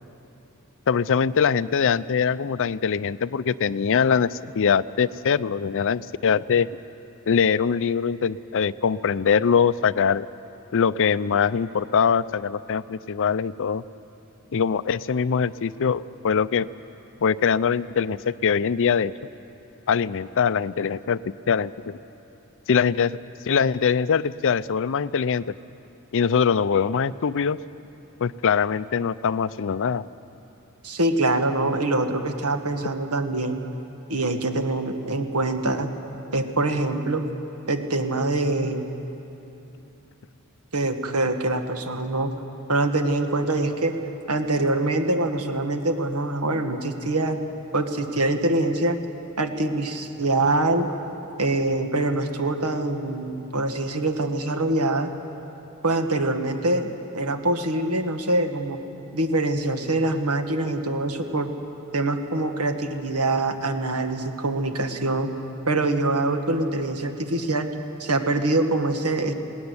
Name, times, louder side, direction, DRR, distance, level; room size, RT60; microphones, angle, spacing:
voice 1, 0.9-6.7 7.3-10.3 10.7-13.8 14.5-16.7 17.2-19.1 19.9-21.2 21.5-22.0 22.7-23.2 23.5-25.4 26.1-27.6 28.2-30.0, left 6 dB, 60° left, 16 dB, 0.5 m, -22 dB
voice 2, 30.8-33.6 34.1-35.9 36.3-37.3 37.7-38.9 40.7-42.3 42.7-44.0 44.3-47.4 47.7-49.0 49.4-50.9 51.4-55.1 55.8-58.8 59.1-61.5 61.9-65.3 65.7-67.7 68.0-69.3, right 2 dB, 85° right, 6 dB, 1.6 m, -24 dB
20.0 x 18.0 x 9.7 m, 2.9 s
head